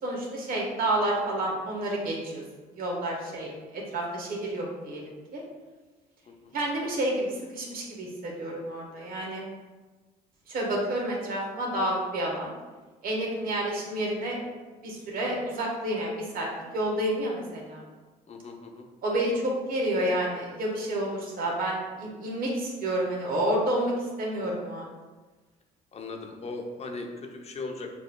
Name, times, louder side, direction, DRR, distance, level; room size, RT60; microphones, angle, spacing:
voice 1, 0.0-2.4 2.7-5.0 5.3-5.4 6.5-9.5 10.5-12.5 13.0-14.4 14.8-16.5 16.7-17.8 19.0-23.9 24.2-24.9, right 1 dB, 60° right, -1 dB, 1.3 m, -29 dB
voice 2, 6.2-6.6 18.3-18.9 25.9-27.9, left 3 dB, 40° left, 3 dB, 0.7 m, -38 dB
6.3 x 2.7 x 2.3 m, 1.3 s
supercardioid pair, 75°, 17 cm